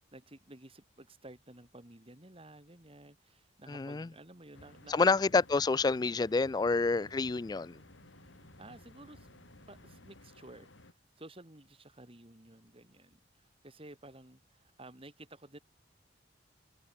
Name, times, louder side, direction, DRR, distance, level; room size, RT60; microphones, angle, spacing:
voice 1, 0.0-5.1 8.3-9.3 9.7-15.6, right 2 dB, 30° right, 2.5 m, -53 dB
voice 2, 3.7-4.1 4.9-7.8, left 4 dB, 20° left, 0.3 m, -28 dB
sound 1, 4.5-10.9, left 1 dB, 80° left, 3.9 m, -56 dB
sound 2, 6.5-10.2, equal, 60° right, 6.8 m, -65 dB
head